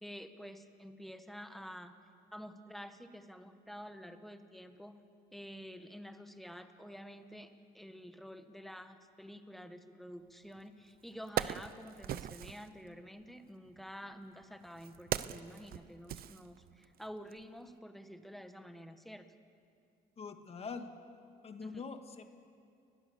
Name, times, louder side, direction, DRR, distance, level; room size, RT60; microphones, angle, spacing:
voice 1, 0.0-1.9 2.3-5.0 5.3-19.3 21.6-21.9, equal, ahead, 8 dB, 1.6 m, -49 dB
Wood, 10.5-10.6 11.0-12.7 13.7-17.0 17.3-17.5, right 11 dB, 60° right, 0.8 m, -40 dB
voice 2, 20.2-20.9 21.4-22.2, left 5 dB, 35° left, 7 dB, 1.9 m, -44 dB
30.0 x 21.5 x 7.2 m, 2.4 s
cardioid pair, 110°, 17 cm